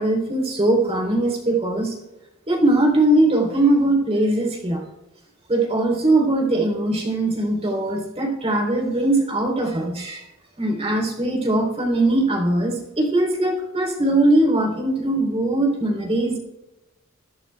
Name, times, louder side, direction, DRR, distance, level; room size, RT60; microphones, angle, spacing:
voice 1, 0.0-1.9 2.5-4.8 5.5-10.2 10.6-16.4, right 1 dB, 30° right, -1 dB, 3.4 m, -20 dB
21.5 x 11.0 x 2.3 m, 1.0 s
head